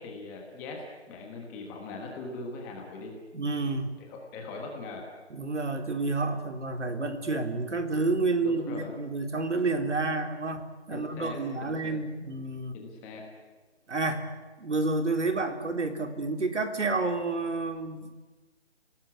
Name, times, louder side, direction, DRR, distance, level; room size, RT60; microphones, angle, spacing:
voice 1, 0.0-3.1 4.0-5.1 8.4-8.9 10.9-12.0 12.7-13.3, left 3 dB, 5° left, 1 dB, 1.2 m, -41 dB
voice 2, 3.3-4.0 5.3-12.8 13.9-14.3 14.6-18.2, right 3 dB, 85° right, 6 dB, 3.6 m, -29 dB
29.0 x 18.0 x 9.6 m, 1.3 s
figure-of-eight pair, 170°, 35 cm